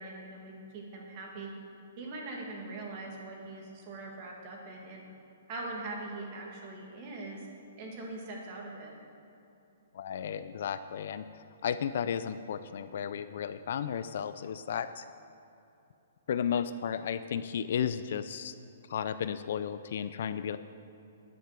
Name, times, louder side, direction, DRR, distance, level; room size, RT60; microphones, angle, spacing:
voice 1, 0.0-1.5 2.0-5.1 5.5-7.4 7.8-8.9, right 2 dB, 30° right, 0 dB, 2.1 m, -42 dB
voice 2, 9.9-15.1 16.3-18.5 18.8-20.6, left 8 dB, 50° left, 12 dB, 0.4 m, -34 dB
10.0 x 9.1 x 7.5 m, 2.8 s
hypercardioid pair, 175°, 0 cm